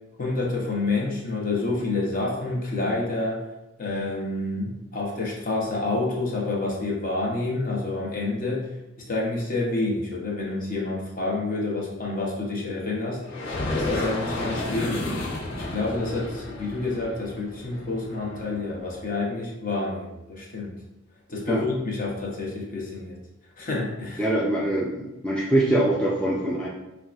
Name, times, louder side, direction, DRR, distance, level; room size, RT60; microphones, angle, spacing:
voice 1, 0.2-3.4 3.8-8.7 9.1-13.2 13.7-15.2 15.7-20.8 21.3-23.2 23.6-24.3, left 2 dB, 40° left, -3 dB, 0.8 m, -28 dB
sound 1, 13.2-18.9, left 2 dB, 60° left, 1.1 m, -32 dB
voice 2, 24.2-26.7, right 1 dB, 5° left, -6 dB, 0.4 m, -23 dB
5.4 x 2.3 x 2.4 m, 0.99 s
head